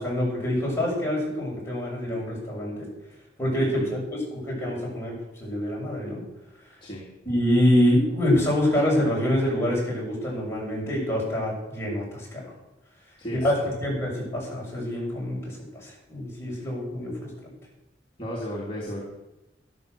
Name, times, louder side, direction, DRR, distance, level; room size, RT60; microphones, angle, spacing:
voice 1, 0.0-2.9 3.4-6.2 7.3-12.5 13.3-17.5, left 1 dB, 15° left, -4 dB, 7.1 m, -26 dB
voice 2, 13.2-13.7 16.5-16.7 18.2-19.0, equal, 30° left, -5 dB, 3.0 m, -34 dB
13.0 x 12.5 x 6.9 m, 0.95 s
head